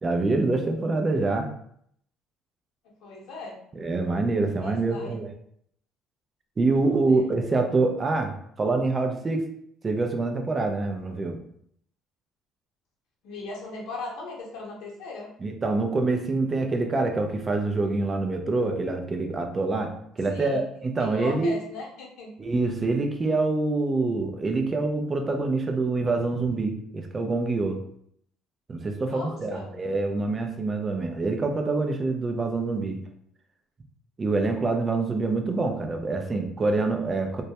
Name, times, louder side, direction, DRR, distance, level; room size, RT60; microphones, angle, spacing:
voice 1, 0.0-1.5 3.8-5.3 6.6-8.3 8.6-9.4 9.8-11.4 15.4-21.6 22.4-27.8 28.7-33.0 34.2-37.4, right 3 dB, 25° right, 4 dB, 0.4 m, -26 dB
voice 2, 3.0-3.6 4.6-5.3 6.7-7.2 13.2-15.3 20.3-20.6 21.0-22.3 29.1-29.8, left 3 dB, 75° left, -2 dB, 0.7 m, -38 dB
2.2 x 2.0 x 2.8 m, 0.68 s
cardioid pair, 125°, 0 cm